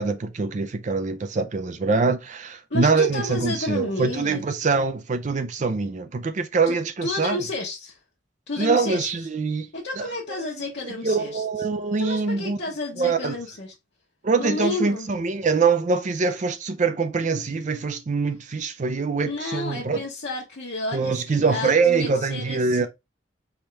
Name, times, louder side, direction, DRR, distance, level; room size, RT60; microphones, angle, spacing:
voice 1, 0.0-7.4 8.6-9.7 10.0-12.6 13.0-13.3 14.2-20.0 20.9-22.9, right 4 dB, 45° right, 0.5 m, -24 dB
voice 2, 2.7-4.4 6.7-6.8 7.0-8.0 8.5-9.1 9.7-11.4 12.0-13.7 14.4-15.1 19.2-22.9, left 2 dB, 70° left, 1.0 m, -31 dB
4.3 x 3.5 x 3.3 m
head